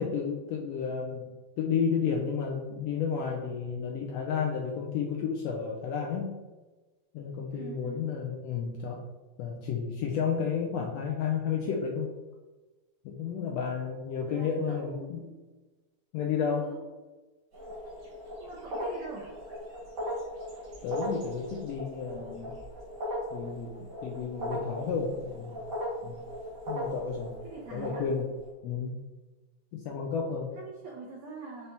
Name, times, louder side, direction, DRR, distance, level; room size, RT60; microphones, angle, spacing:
voice 1, 0.0-6.4 7.1-9.0 9.4-12.1 13.0-15.2 16.1-16.7 20.8-22.6 23.3-23.7 24.0-25.6 26.0-26.2 26.7-27.3 27.7-28.3 28.6-29.0 29.7-30.5, left 6 dB, 85° left, -1 dB, 1.4 m, -32 dB
voice 2, 7.5-8.2 14.3-15.4 16.6-16.8 18.4-19.4 27.4-28.1 30.6-31.7, right 4 dB, 90° right, -2 dB, 1.2 m, -44 dB
sound 1, 17.5-28.5, equal, 55° right, 0.9 m, -38 dB
5.5 x 2.8 x 3.3 m, 1.2 s
omnidirectional pair, 3.4 m